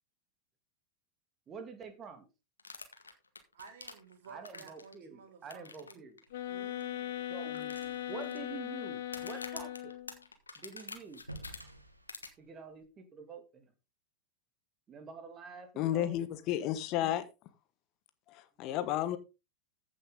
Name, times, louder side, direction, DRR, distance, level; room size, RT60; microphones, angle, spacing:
voice 1, 1.5-2.3 4.3-6.2 7.3-9.9 10.6-11.3 12.4-13.7 14.9-16.2, right 5 dB, 25° right, 2.5 m, -47 dB
sound 1, 2.6-4.9 5.5-5.9 6.2-6.3 6.8-6.9 7.5-8.3 9.0-11.6 12.1-12.3, left 4 dB, 75° left, 1.8 m, -46 dB
voice 2, 3.5-6.0 6.4-7.3, right 6 dB, 60° right, 3.1 m, -54 dB
sound 2, 6.3-10.2, left 12 dB, 55° left, 1.8 m, -39 dB
sound 3, 6.3-9.7 10.0-10.1 10.4-10.5 10.8-12.8, right 1 dB, 85° right, 1.8 m, -52 dB
voice 3, 15.8-17.2 18.3-19.2, left 12 dB, 40° left, 1.3 m, -32 dB
15.0 x 6.7 x 3.8 m
figure-of-eight pair, 90°, 0 cm